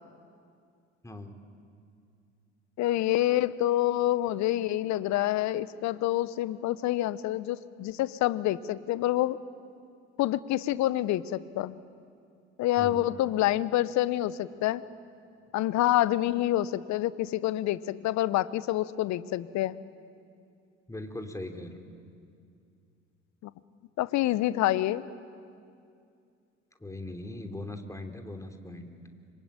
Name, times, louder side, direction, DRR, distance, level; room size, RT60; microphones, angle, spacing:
voice 1, 1.0-1.4 12.8-13.0 20.9-21.8 26.8-28.9, left 2 dB, 10° left, 5 dB, 3.2 m, -40 dB
voice 2, 2.8-9.4 10.2-11.8 12.6-14.8 15.5-19.8 23.4-23.5 24.0-25.0, left 14 dB, 55° left, 17 dB, 1.0 m, -27 dB
25.5 x 25.0 x 9.0 m, 2.4 s
figure-of-eight pair, 55°, 34 cm